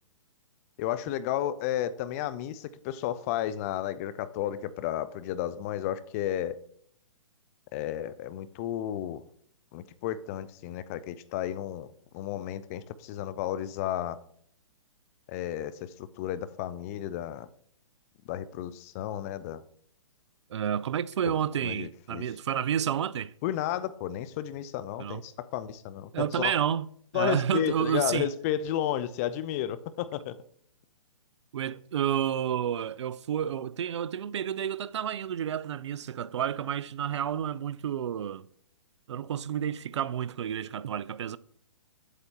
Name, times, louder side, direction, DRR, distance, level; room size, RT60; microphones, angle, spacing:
voice 1, 0.8-6.6 7.7-9.2 9.7-11.9 12.1-14.2 15.3-17.5 18.3-19.6 21.2-21.4 21.6-22.3 23.4-26.5 27.1-30.4, left 11 dB, 30° left, 0.4 m, -32 dB
voice 2, 20.5-23.3 25.0-25.2 26.1-26.9 27.1-28.3 31.5-38.4 39.1-41.4, right 9 dB, 60° right, 0.4 m, -30 dB
8.3 x 8.0 x 2.9 m
figure-of-eight pair, 130°, 17 cm